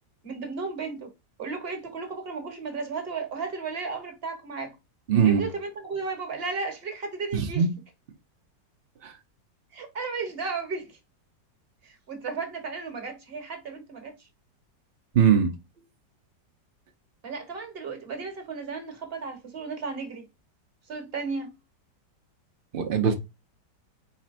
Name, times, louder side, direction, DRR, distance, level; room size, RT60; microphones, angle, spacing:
voice 1, 0.2-1.1 1.4-4.8 5.2-7.7 9.7-11.0 11.8-14.3 17.2-20.2 20.9-21.5, right 4 dB, 40° right, 1.2 m, -34 dB
voice 2, 5.1-5.5 7.3-7.7 9.0-9.1 15.1-15.5 22.7-23.1, right 7 dB, 80° right, 0.5 m, -21 dB
4.2 x 4.1 x 2.5 m
omnidirectional pair, 1.9 m